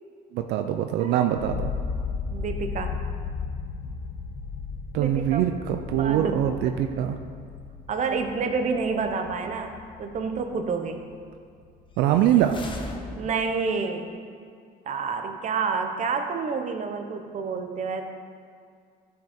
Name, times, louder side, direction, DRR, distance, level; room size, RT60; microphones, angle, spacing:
voice 1, 0.3-1.7 4.9-7.2 12.0-12.6, right 11 dB, 85° right, 6 dB, 0.5 m, -23 dB
sound 1, 1.4-11.3 11.6-12.4, left 5 dB, 80° left, 1.0 m, -35 dB
voice 2, 2.3-2.9 5.0-5.4 6.0-6.7 7.9-11.0 13.2-14.1 14.9-18.0, right 5 dB, 45° right, 6 dB, 0.9 m, -29 dB
sound 2, 11.9-13.7, left 2 dB, 30° left, 1.1 m, -39 dB
12.0 x 6.0 x 4.3 m, 2.2 s
cardioid pair, 110°, 17 cm